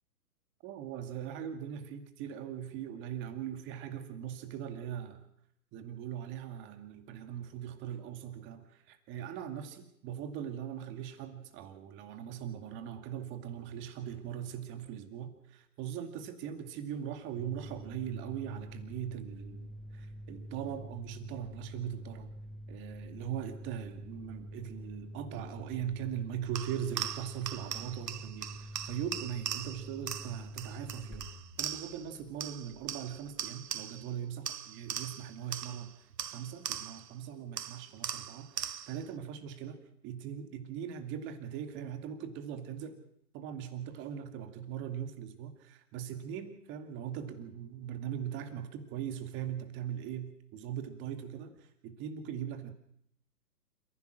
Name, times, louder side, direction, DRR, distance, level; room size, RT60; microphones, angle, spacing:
voice 1, 0.6-5.3 5.7-22.3 22.7-39.8 40.0-43.0 43.3-52.7, right 9 dB, 25° right, 8 dB, 2.2 m, -40 dB
sound 1, 17.4-33.7, equal, ahead, 6.1 m, -47 dB
sound 2, 26.5-32.1 32.4-34.1 34.5-37.1 37.6-39.1, right 9 dB, 80° right, 1.0 m, -40 dB
28.0 x 15.5 x 6.4 m, 0.71 s
hypercardioid pair, 135°, 48 cm